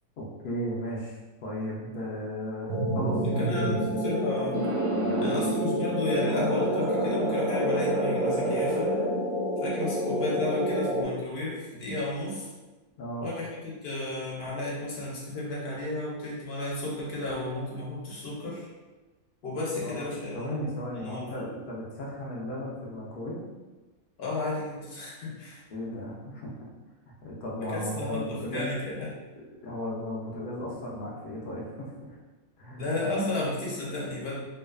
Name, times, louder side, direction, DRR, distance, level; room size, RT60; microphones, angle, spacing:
voice 1, 0.2-3.9 4.9-5.4 13.0-13.3 19.8-20.1 20.3-23.4 25.7-26.5 27.2-28.7 29.6-32.2 32.6-32.9, equal, 80° left, -4 dB, 0.4 m, -35 dB
sound 1, 2.7-11.0, equal, 90° right, 1.1 m, -27 dB
voice 2, 3.2-4.6 5.2-8.9 9.6-12.5 13.2-18.7 19.4-20.5 21.0-21.5 24.2-25.6 27.6-29.1 32.8-34.3, left 2 dB, 55° left, -4 dB, 0.8 m, -33 dB
2.6 x 2.2 x 2.3 m, 1.2 s
omnidirectional pair, 1.5 m